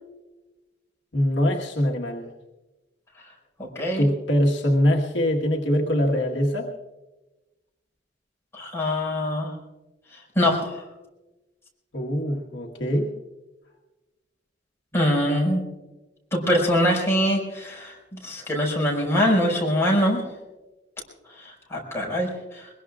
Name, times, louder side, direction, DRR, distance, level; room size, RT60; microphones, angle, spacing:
voice 1, 1.1-2.3 4.0-6.7 11.9-13.1, equal, 70° left, -1 dB, 1.5 m, -23 dB
voice 2, 3.8-4.1 8.5-9.5 10.4-10.8 14.9-15.6 16.3-17.9 18.2-20.3 21.4-22.7, equal, 15° left, -2 dB, 5.3 m, -23 dB
23.0 x 21.5 x 2.4 m, 1.1 s
head